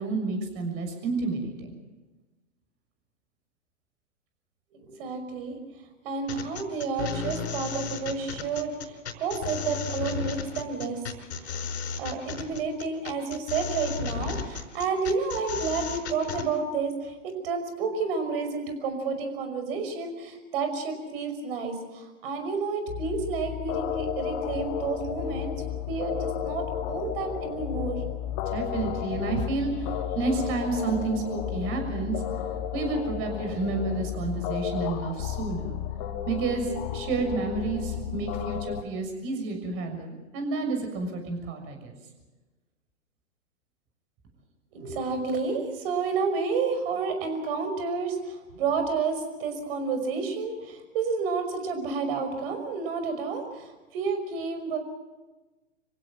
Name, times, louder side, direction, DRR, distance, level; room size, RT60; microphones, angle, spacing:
voice 1, 0.0-1.7 28.5-29.9 30.1-32.2 32.7-35.8 36.3-41.9, right 3 dB, 35° right, 5 dB, 6.7 m, -30 dB
voice 2, 4.7-5.6 6.0-11.0 11.4-11.7 12.0-25.5 25.9-28.0 44.7-54.8, right 4 dB, 50° right, 7 dB, 5.7 m, -30 dB
sound 1, 6.3-16.5, left 6 dB, 60° left, 4.6 m, -34 dB
sound 2, 22.9-38.8, left 10 dB, 35° left, 1.7 m, -33 dB
27.0 x 16.0 x 7.5 m, 1.2 s
hypercardioid pair, 120°, 37 cm